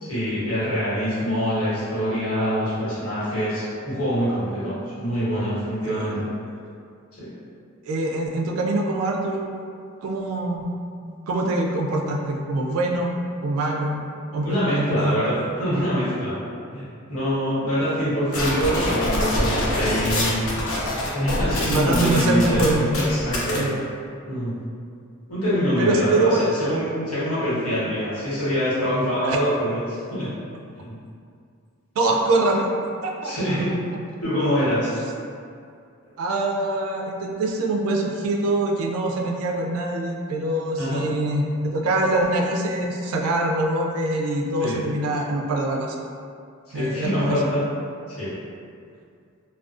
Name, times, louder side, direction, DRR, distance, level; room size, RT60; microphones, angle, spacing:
voice 1, 0.0-6.2 7.2-7.3 14.4-16.3 16.7-20.4 21.1-23.6 24.2-24.5 25.3-26.3 26.6-30.3 30.7-30.9 33.2-33.7 34.2-34.9 40.8-41.0 44.6-44.8 46.7-47.7 48.2-48.3, equal, 85° left, -12 dB, 1.2 m, -24 dB
voice 2, 7.9-9.5 10.0-10.8 11.3-14.0 14.3-15.2 21.7-22.9 23.5-23.8 25.8-26.5 29.2-29.4 32.0-32.7 33.0-33.3 36.2-46.0 46.7-47.4, right 2 dB, 75° right, 0 dB, 0.3 m, -24 dB
sound 1, 18.3-23.6, left 1 dB, 65° left, 0.5 m, -25 dB
2.4 x 2.2 x 2.4 m, 2.3 s
head